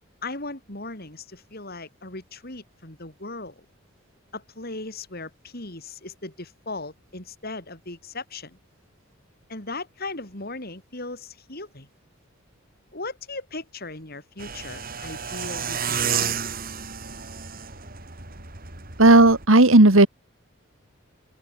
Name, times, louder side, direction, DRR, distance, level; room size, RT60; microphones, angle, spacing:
voice 1, 0.2-3.6 4.3-8.6 9.5-11.9 12.9-16.4, left 2 dB, 50° left, 5.0 m, -37 dB
sound 1, 14.4-19.5, right 7 dB, 45° right, 4.1 m, -31 dB
voice 2, 19.0-20.1, right 2 dB, 75° right, 2.2 m, -13 dB
open air
head